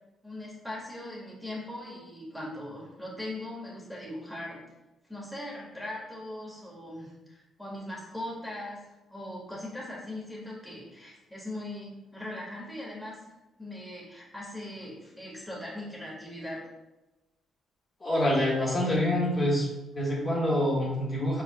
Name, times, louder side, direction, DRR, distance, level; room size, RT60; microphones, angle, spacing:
voice 1, 0.2-4.6 5.1-8.8 9.1-13.2 13.6-16.6, left 1 dB, ahead, -6 dB, 1.6 m, -40 dB
voice 2, 18.0-19.7 19.9-21.4, left 1 dB, 30° left, -6 dB, 1.5 m, -26 dB
4.8 x 4.7 x 2.2 m, 1.0 s
cardioid pair, 90°, 0 cm